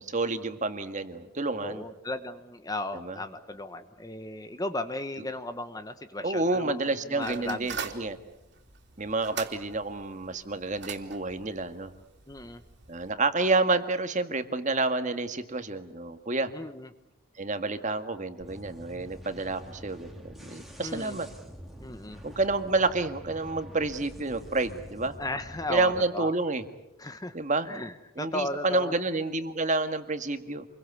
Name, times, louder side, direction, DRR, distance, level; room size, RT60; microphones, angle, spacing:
voice 1, 0.0-1.8 2.9-3.2 6.2-8.2 9.0-11.9 12.9-16.5 17.4-21.3 22.2-25.1 25.7-26.6 27.3-27.7 28.2-30.7, right 3 dB, 35° right, 8 dB, 1.8 m, -29 dB
voice 2, 1.6-7.8 12.3-12.6 16.5-16.9 20.8-21.2 21.8-22.2 25.2-26.3 27.0-27.4 27.6-28.9, left 1 dB, 15° left, 10 dB, 1.0 m, -36 dB
sound 1, 7.2-13.1, right 6 dB, 50° right, 3.2 m, -42 dB
sound 2, 18.4-26.0, equal, ahead, 2.6 m, -46 dB
28.0 x 23.0 x 8.3 m, 0.89 s
head